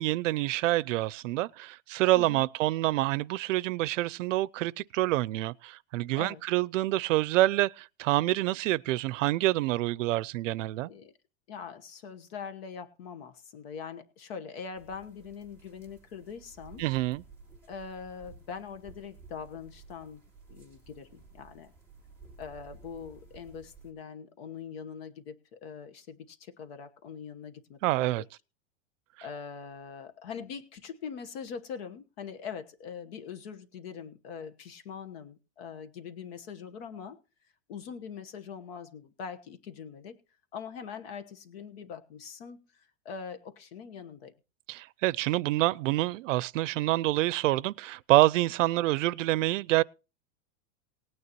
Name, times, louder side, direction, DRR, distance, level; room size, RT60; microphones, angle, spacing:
voice 1, 0.0-10.9 16.8-17.2 27.8-28.2 44.7-49.8, right 17 dB, 85° right, 0.6 m, -27 dB
voice 2, 11.5-16.8 17.7-20.2 20.5-21.7 22.4-28.3 29.2-37.2 37.7-40.2 40.5-44.3, left 6 dB, 55° left, 1.2 m, -42 dB
sound 1, 14.7-23.9, right 4 dB, 5° left, 2.6 m, -54 dB
19.0 x 9.6 x 3.0 m
supercardioid pair, 175°, 37 cm